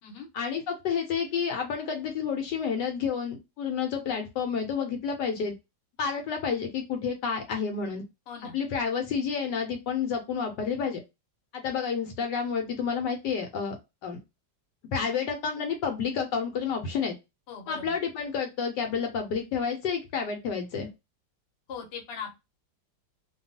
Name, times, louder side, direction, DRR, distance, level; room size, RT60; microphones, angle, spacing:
voice 1, 0.3-5.5 6.0-8.0 8.5-11.0 11.5-13.8 14.0-14.2 14.9-17.1 17.7-20.9, left 6 dB, 75° left, 3 dB, 1.1 m, -30 dB
voice 2, 8.3-8.6 17.5-17.9 21.7-22.4, left 6 dB, 45° left, 1 dB, 0.9 m, -40 dB
2.9 x 2.3 x 2.5 m, 0.24 s
omnidirectional pair, 2.0 m